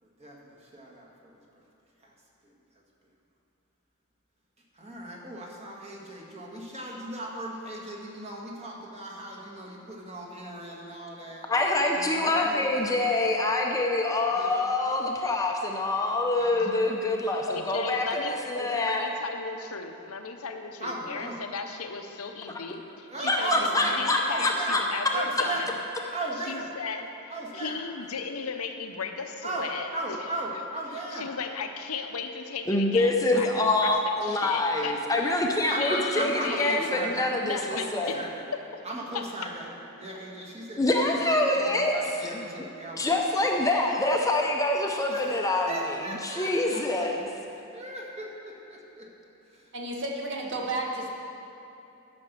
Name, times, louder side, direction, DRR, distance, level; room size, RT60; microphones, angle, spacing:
voice 1, 0.0-1.6 2.0-2.1 2.4-2.5 4.7-11.4 11.9-13.2 14.3-14.7 16.4-16.8 20.8-21.4 23.1-24.8 25.1-25.7 26.1-26.7 27.3-27.8 29.4-31.3 35.7-37.3 37.7-38.4 38.8-39.7 40.0-43.1 45.0-47.1 47.5-49.0, right 1 dB, 30° right, -2 dB, 1.8 m, -37 dB
voice 2, 11.5-19.1 23.3-24.8 32.7-38.1 40.8-42.4 43.0-46.0 46.2-47.3, left 2 dB, 15° left, 1 dB, 0.7 m, -26 dB
voice 3, 17.5-25.8 26.5-27.1 27.5-30.2 31.1-35.0 35.7-38.2 39.1-39.2, left 5 dB, 75° left, 5 dB, 0.8 m, -36 dB
voice 4, 49.7-51.1, right 2 dB, 55° right, -1 dB, 1.6 m, -32 dB
12.0 x 6.1 x 6.9 m, 3.0 s
head